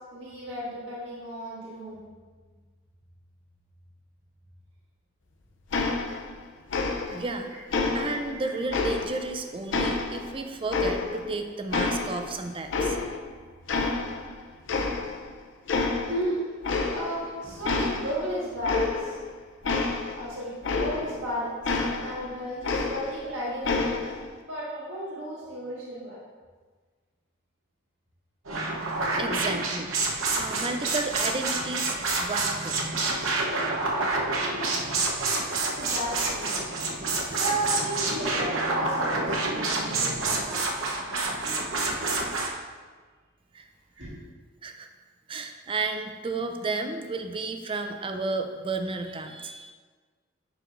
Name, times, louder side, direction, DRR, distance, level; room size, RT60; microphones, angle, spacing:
voice 1, 0.1-2.0 8.4-8.6 16.1-16.4 16.9-19.2 20.2-21.6 21.9-24.0 24.5-26.2 35.7-36.5 37.0-40.8 43.9-44.2, right 1 dB, 65° right, -7 dB, 1.6 m, -34 dB
sound 1, 5.7-6.4 6.7-7.3 7.7-9.3 9.7-11.4 11.7-13.3 13.7-14.4 14.7-15.3 15.7-16.2 16.6-17.3 17.6-21.3 21.6-23.3 23.6-24.3, left 3 dB, 65° left, 0.6 m, -29 dB
voice 2, 7.1-7.5 7.9-13.0 29.2-29.9 30.4-32.8 43.5-43.7 44.6-44.9 45.3-49.7, right 3 dB, 25° right, 6 dB, 0.4 m, -32 dB
sound 2, 28.4-42.5, right 3 dB, 90° right, 0.9 m, -28 dB
10.0 x 4.7 x 2.6 m, 1.5 s
head